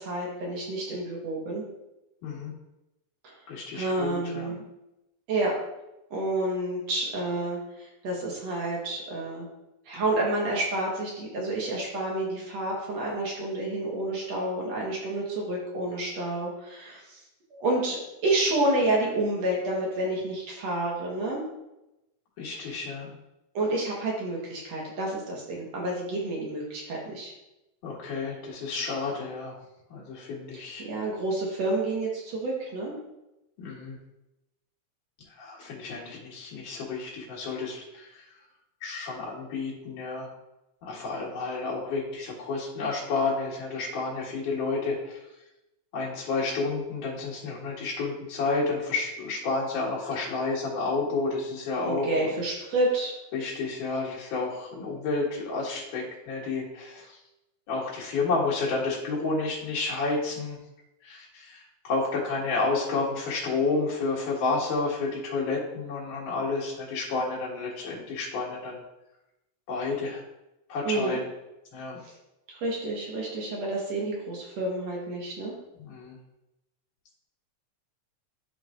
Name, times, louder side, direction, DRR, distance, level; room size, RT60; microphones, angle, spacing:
voice 1, 0.0-1.6 3.2-3.3 3.7-4.6 5.3-5.5 6.1-9.5 9.9-17.2 17.5-21.4 22.5-22.6 23.5-27.3 30.5-33.0 51.9-53.1 70.9-71.2 72.5-75.5, right 2 dB, 60° right, -3 dB, 2.2 m, -29 dB
voice 2, 2.2-2.5 3.5-4.5 22.4-23.1 27.8-29.5 29.9-30.9 33.6-34.0 35.3-38.2 38.8-40.3 40.8-45.2 45.9-52.1 53.3-57.2 57.7-60.6 61.0-68.8 69.7-70.2 70.7-71.2 71.7-72.0 75.8-76.2, left 3 dB, 80° left, -5 dB, 3.2 m, -30 dB
11.5 x 4.8 x 2.5 m, 0.92 s
omnidirectional pair, 3.6 m